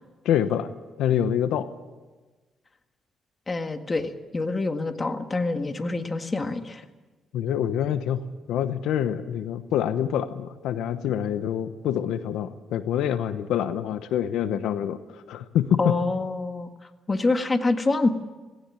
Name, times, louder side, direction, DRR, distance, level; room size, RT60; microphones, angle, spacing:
voice 1, 0.2-0.7 1.0-1.7 7.3-8.2 8.5-16.0, left 10 dB, 85° left, 12 dB, 0.9 m, -26 dB
voice 2, 3.5-6.8 15.8-18.1, left 3 dB, 25° left, 7 dB, 1.8 m, -26 dB
18.0 x 17.5 x 9.8 m, 1.3 s
cardioid pair, 90°, 0 cm